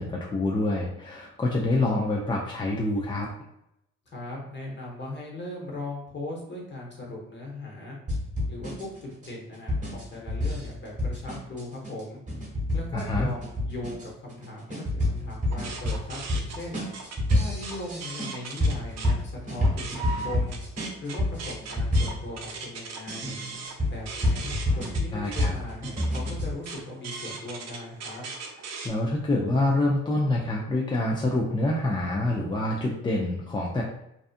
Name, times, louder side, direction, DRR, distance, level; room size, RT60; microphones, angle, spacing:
voice 1, 0.0-3.3 12.9-13.3 24.7-24.8 25.1-25.5 28.8-33.8, left 2 dB, 15° left, -2 dB, 0.3 m, -26 dB
voice 2, 4.1-8.0 8.5-12.2 12.7-16.8 17.3-20.6 21.0-23.4 23.9-28.3, left 1 dB, 35° left, -2 dB, 1.0 m, -39 dB
sound 1, 8.1-22.6 23.1-26.5, left 1 dB, 25° right, 1.1 m, -29 dB
sound 2, 15.5-19.1 19.5-28.9, right 4 dB, 60° right, 0.6 m, -39 dB
2.6 x 2.3 x 2.5 m, 0.81 s
cardioid pair, 90°, 30 cm